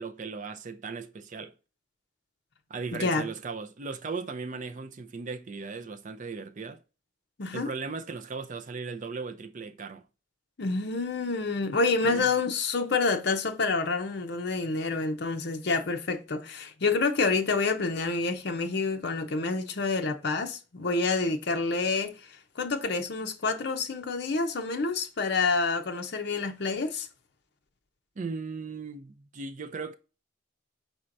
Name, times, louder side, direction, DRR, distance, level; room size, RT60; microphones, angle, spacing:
voice 1, 0.0-1.5 2.7-6.8 7.5-10.0 12.0-12.3 28.2-29.9, right 4 dB, 40° right, 0.5 m, -37 dB
voice 2, 2.9-3.3 7.4-7.7 10.6-22.1 22.6-27.1, left 4 dB, 60° left, 0.7 m, -28 dB
4.4 x 4.3 x 2.5 m
head